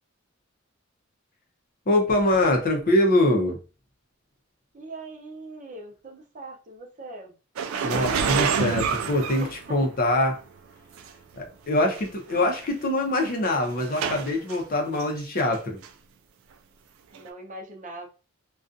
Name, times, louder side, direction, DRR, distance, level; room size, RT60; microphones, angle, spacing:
voice 1, 1.9-3.6 7.8-10.4 11.4-15.8, left 1 dB, 45° left, 3 dB, 0.6 m, -23 dB
voice 2, 4.7-7.3 9.4-9.5 17.1-18.1, right 2 dB, 40° right, 1 dB, 0.6 m, -41 dB
sound 1, 7.6-10.1 11.0-11.1 12.0-12.1 12.3-12.6 13.2-14.6 15.0-15.6 15.8-15.9 17.1-17.2, right 6 dB, 85° right, 0.3 m, -28 dB
2.4 x 2.3 x 2.5 m, 0.33 s
head